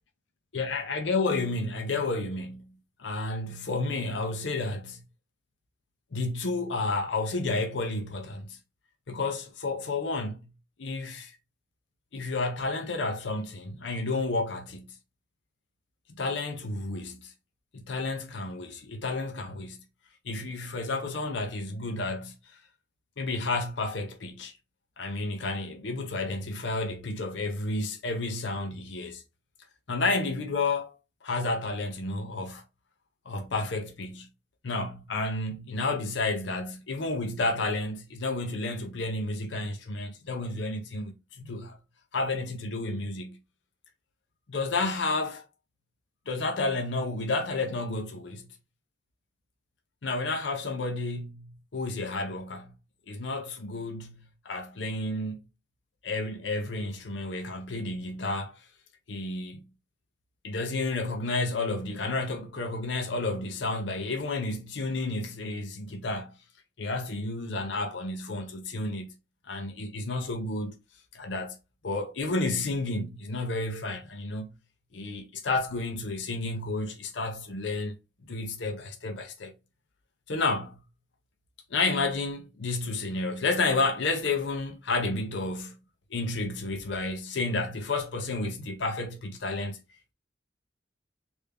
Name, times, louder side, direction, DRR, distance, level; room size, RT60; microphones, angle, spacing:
voice 1, 0.5-2.7 3.0-5.0 6.1-8.6 9.1-10.5 10.8-11.3 12.1-14.9 16.2-17.3 17.7-19.8 20.2-22.6 23.2-24.5 25.0-29.2 29.9-31.0 31.2-32.6 33.3-34.3 34.6-41.8 42.1-43.4 44.5-45.4 46.3-48.4 50.0-52.7 53.1-55.4 56.0-58.6 59.1-59.7 60.4-66.3 66.8-69.1 69.5-70.7 71.1-71.6 71.8-74.5 74.9-78.0 78.3-79.5 80.3-80.8 81.7-85.8 86.1-89.8, left 3 dB, 75° left, 0.6 m, -31 dB
3.3 x 2.6 x 3.4 m
head